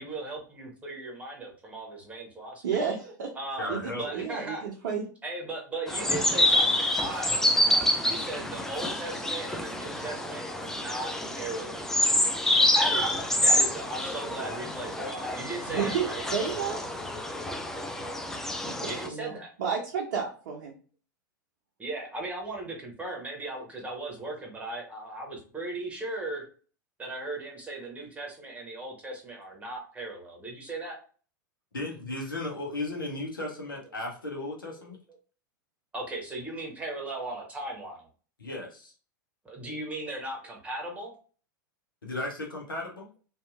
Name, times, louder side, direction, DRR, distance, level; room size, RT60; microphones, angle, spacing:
voice 1, 0.0-2.8 3.3-4.6 5.2-12.0 12.8-16.2 18.9-19.5 21.8-26.4 27.0-31.0 35.9-38.1 39.4-41.1, right 2 dB, 10° right, 0 dB, 1.1 m, -37 dB
voice 2, 2.6-3.3 3.7-5.0 15.7-16.8 18.7-20.7, right 6 dB, 65° right, -2 dB, 0.7 m, -31 dB
voice 3, 3.6-4.3 31.7-35.0 38.4-38.9 42.0-43.1, left 2 dB, 85° left, 0 dB, 0.8 m, -35 dB
sound 1, 5.9-19.1, left 1 dB, 5° left, 0.3 m, -27 dB
2.7 x 2.5 x 2.4 m, 0.39 s
figure-of-eight pair, 90°, 11 cm